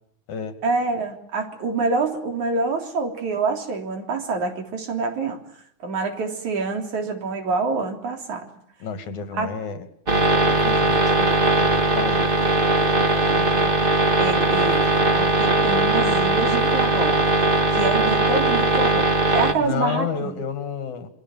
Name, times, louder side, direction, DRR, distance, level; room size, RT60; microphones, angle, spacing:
voice 1, 0.6-5.4 5.8-8.5 9.3-9.5 13.1-13.7 14.2-17.3 17.7-20.4, right 4 dB, 70° right, 4 dB, 4.9 m, -26 dB
voice 2, 8.8-9.9 10.3-11.3 11.6-12.3 19.6-21.1, left 6 dB, 75° left, 9 dB, 3.7 m, -30 dB
sound 1, 10.1-19.5, right 2 dB, 25° right, 1.4 m, -19 dB
27.5 x 22.5 x 7.4 m, 0.69 s
omnidirectional pair, 3.5 m